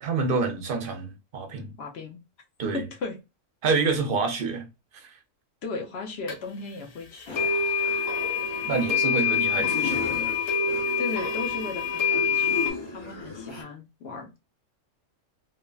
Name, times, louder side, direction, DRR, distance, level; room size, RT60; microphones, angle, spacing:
voice 1, 0.0-1.7 2.6-2.8 3.6-4.7 4.9-5.2 8.7-10.1, right 4 dB, 55° right, 0.7 m, -27 dB
voice 2, 1.8-2.2 2.7-3.2 3.8-4.0 5.6-7.4 11.0-12.6 12.9-14.3, left 3 dB, 60° left, 0.9 m, -36 dB
sound 1, 6.3-6.4 7.3-12.7, left 6 dB, 80° left, 1.2 m, -26 dB
sound 2, 7.3-13.6, left 3 dB, 30° left, 0.5 m, -37 dB
3.2 x 2.1 x 2.2 m
omnidirectional pair, 1.3 m